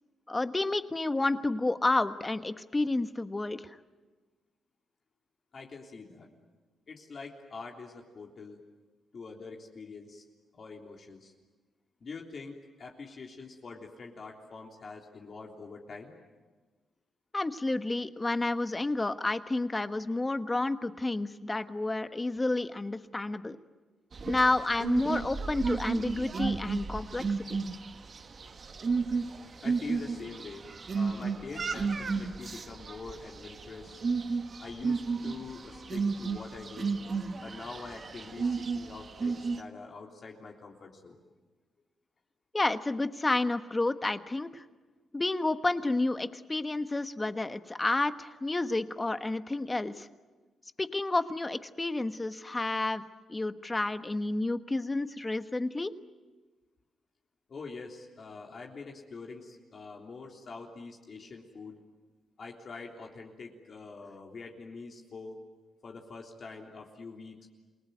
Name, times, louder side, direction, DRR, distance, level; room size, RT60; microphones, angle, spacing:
voice 1, 0.3-3.7 17.3-23.6 24.3-27.2 42.5-44.6 45.1-50.1 50.8-53.0 53.3-55.9, left 2 dB, 20° left, 10 dB, 1.3 m, -30 dB
voice 2, 5.5-6.3 6.9-8.6 9.1-10.2 10.5-11.3 12.0-16.2 29.6-30.7 30.9-34.0 34.6-37.0 37.4-41.2 57.5-61.8 62.4-65.4 65.8-67.5, left 4 dB, 50° left, 0 dB, 3.5 m, -45 dB
sound 1, 24.1-39.6, right 4 dB, 45° right, 1.6 m, -33 dB
28.5 x 19.0 x 9.3 m, 1.3 s
cardioid pair, 85°, 0 cm